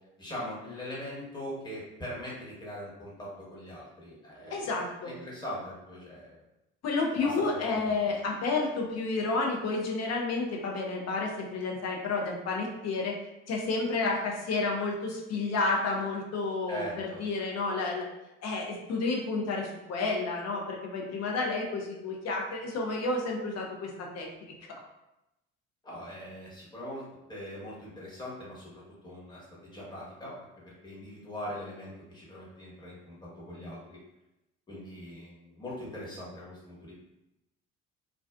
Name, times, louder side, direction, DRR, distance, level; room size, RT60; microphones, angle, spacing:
voice 1, 0.2-4.8 5.0-6.4 7.1-7.9 16.7-17.2 25.8-27.0 27.3-29.4 29.7-30.4 30.6-33.1 33.5-34.0 34.7-36.9, left 1 dB, 10° left, -6 dB, 1.2 m, -41 dB
voice 2, 4.5-5.1 6.8-13.1 13.5-18.0 18.4-24.5, left 3 dB, 45° left, 0 dB, 0.7 m, -31 dB
2.4 x 2.3 x 2.3 m, 0.92 s
figure-of-eight pair, 50°, 35 cm